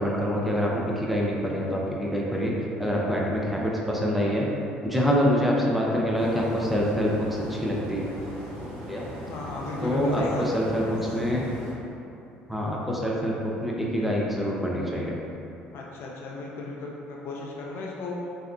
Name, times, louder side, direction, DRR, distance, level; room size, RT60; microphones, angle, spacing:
voice 1, 0.0-2.5 2.8-4.5 4.8-8.0 8.9-9.0 9.8-11.5 12.5-15.2, equal, ahead, -4 dB, 0.5 m, -26 dB
sound 1, 6.1-11.7, equal, 65° right, 1.0 m, -39 dB
voice 2, 9.3-10.9 15.7-18.2, left 2 dB, 55° left, -2 dB, 0.4 m, -35 dB
3.4 x 2.7 x 2.3 m, 2.7 s
figure-of-eight pair, 55°, 5 cm